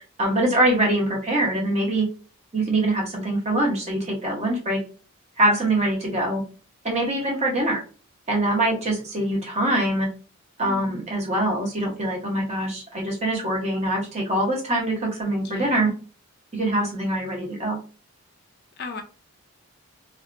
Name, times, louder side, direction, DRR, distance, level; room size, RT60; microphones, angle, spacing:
voice 1, 0.2-2.1 2.5-4.8 5.4-6.4 6.8-7.8 8.3-10.1 10.6-15.9 16.5-17.8, right 1 dB, 30° right, -1 dB, 0.7 m, -23 dB
voice 2, 10.6-11.0 15.4-16.0 18.8-19.0, left 3 dB, 45° left, 5 dB, 0.4 m, -37 dB
2.7 x 2.3 x 2.4 m, 0.37 s
head